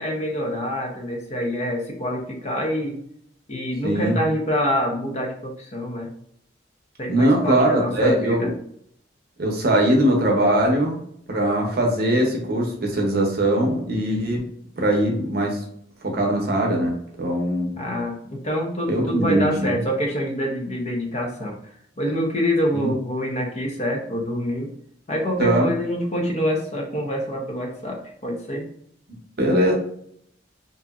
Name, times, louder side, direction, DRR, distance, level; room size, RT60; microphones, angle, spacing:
voice 1, 0.0-3.0 3.5-6.1 7.0-8.5 17.8-21.6 22.0-24.7 25.1-28.7, equal, 35° left, 1 dB, 0.7 m, -26 dB
voice 2, 3.8-4.2 7.1-8.5 9.4-11.0 11.3-14.4 14.8-15.6 16.0-17.7 18.9-19.7 22.7-22.9 25.4-25.7 29.4-29.7, right 1 dB, 55° right, 0 dB, 0.7 m, -21 dB
2.8 x 2.6 x 2.3 m, 0.68 s
head